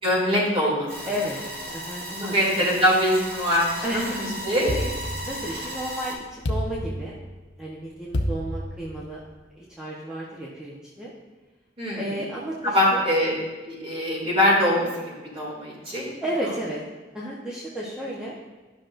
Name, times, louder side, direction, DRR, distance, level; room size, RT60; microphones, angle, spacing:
voice 1, 0.0-0.9 2.3-5.1 11.8-12.1 12.6-13.3 13.6-16.1, equal, 35° right, -5 dB, 2.8 m, -23 dB
sound 1, 0.9-6.1, equal, 60° right, 1.7 m, -35 dB
voice 2, 1.0-1.4 1.7-2.7 3.8-4.0 5.2-7.2 7.6-9.2 9.5-11.1 12.0-13.0 16.2-16.8 17.1-18.3, equal, 5° right, -7 dB, 1.0 m, -33 dB
sound 2, 4.7-5.8 6.4-7.5 8.1-9.3, equal, 80° left, 0.7 m, -30 dB
12.0 x 6.1 x 2.6 m, 1.3 s
head